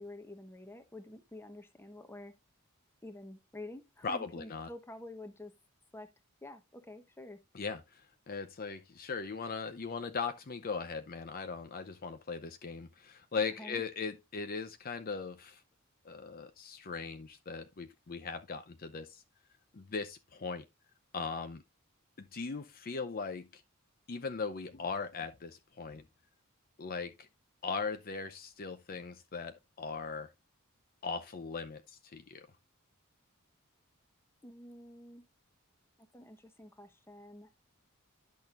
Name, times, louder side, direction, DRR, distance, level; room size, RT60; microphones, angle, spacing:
voice 1, 0.0-2.3 3.0-5.5 5.9-6.1 6.4-7.4 13.4-13.8 34.4-35.2 36.1-37.5, left 1 dB, 10° left, 1.0 m, -48 dB
voice 2, 4.0-4.7 7.5-15.6 16.0-19.2 19.7-20.6 21.1-21.6 22.2-23.6 24.1-26.0 26.8-27.3 27.6-30.3 31.0-32.4, left 5 dB, 45° left, 0.6 m, -39 dB
10.5 x 6.3 x 2.5 m
head